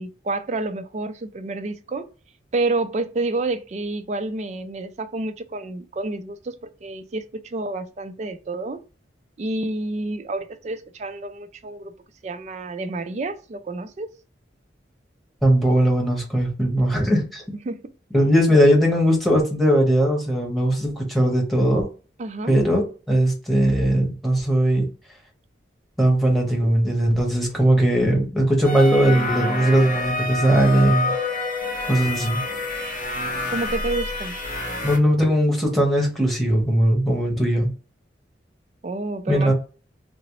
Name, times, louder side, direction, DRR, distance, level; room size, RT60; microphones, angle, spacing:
voice 1, 0.0-2.1 2.5-8.8 9.4-11.9 12.2-14.1 17.7-17.8 22.2-22.6 33.5-34.4 38.8-39.5, right 2 dB, 40° right, 0.3 m, -29 dB
voice 2, 15.4-17.4 18.1-21.9 22.5-24.9 26.0-31.1 31.9-32.4 34.8-37.7 39.3-39.5, right 1 dB, ahead, 1.0 m, -19 dB
sound 1, 28.6-35.0, left 2 dB, 45° left, 1.0 m, -27 dB
3.7 x 2.0 x 3.0 m
head